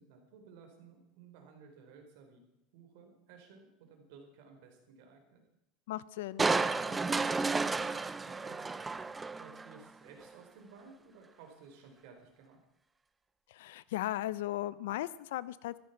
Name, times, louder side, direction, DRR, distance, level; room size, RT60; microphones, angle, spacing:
voice 1, 0.0-2.4 2.7-5.4 6.8-12.6, right 5 dB, 70° right, 4 dB, 4.6 m, -56 dB
voice 2, 5.9-6.5 13.5-15.8, left 14 dB, 90° left, 17 dB, 0.7 m, -37 dB
Crushing, 6.4-9.8 10.2-10.3, right 3 dB, 15° right, 0.6 m, -32 dB
14.5 x 13.0 x 6.0 m, 0.86 s
supercardioid pair, 135°, 0 cm